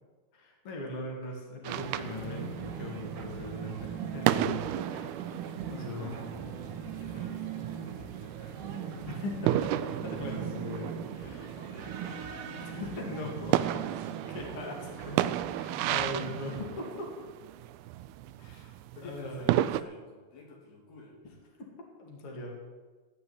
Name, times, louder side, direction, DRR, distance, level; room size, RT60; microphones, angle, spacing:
voice 1, 0.3-6.2 9.0-11.5 12.6-13.8 14.3-14.7 15.5-17.1 18.4-19.7 21.6-21.7 22.0-22.5, left 2 dB, 40° left, -1 dB, 3.2 m, -40 dB
sound 1, 1.6-19.8, right 13 dB, 85° right, 2.4 m, -34 dB
sound 2, 1.7-16.6, right 7 dB, 65° right, 2.5 m, -40 dB
voice 2, 4.6-5.1 5.4-9.3 11.2-12.9 14.3-14.8 16.3-16.4 19.0-21.2, left 3 dB, 85° left, -3 dB, 5.2 m, -52 dB
16.5 x 5.7 x 9.8 m, 1.3 s
omnidirectional pair, 4.4 m